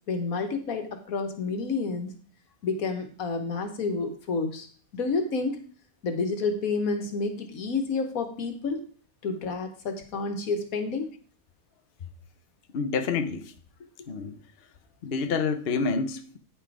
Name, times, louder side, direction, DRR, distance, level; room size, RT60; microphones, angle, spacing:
voice 1, 0.1-2.1 2.6-4.7 4.9-5.6 6.0-8.8 9.2-11.1, left 4 dB, 85° left, 7 dB, 1.7 m, -29 dB
voice 2, 12.7-13.5 14.1-14.4 15.0-16.4, left 5 dB, 50° left, 9 dB, 1.0 m, -28 dB
9.8 x 5.6 x 4.8 m, 0.42 s
omnidirectional pair, 1.4 m